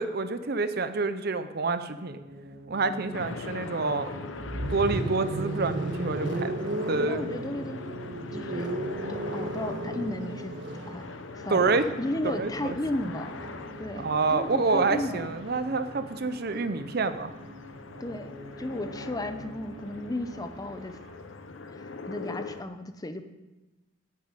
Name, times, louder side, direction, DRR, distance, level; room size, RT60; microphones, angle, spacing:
voice 1, 0.0-2.2 2.7-4.3 4.7-7.3 11.5-11.8 12.2-12.8 14.0-17.3, right 3 dB, 55° right, 11 dB, 0.7 m, -28 dB
sound 1, 1.9-20.7, equal, 90° right, 2.2 m, -47 dB
sound 2, 3.1-22.6, left 3 dB, 80° left, 0.9 m, -42 dB
sound 3, 4.3-16.3 17.6-21.2, right 1 dB, 70° right, 1.5 m, -36 dB
voice 2, 7.1-7.9 8.3-8.7 9.1-10.6 10.9-11.0 11.3-11.7 12.0-13.3 13.8-15.4 18.0-21.0 21.7-23.2, left 1 dB, 20° left, 8 dB, 0.7 m, -34 dB
9.3 x 7.5 x 8.9 m, 1.1 s
head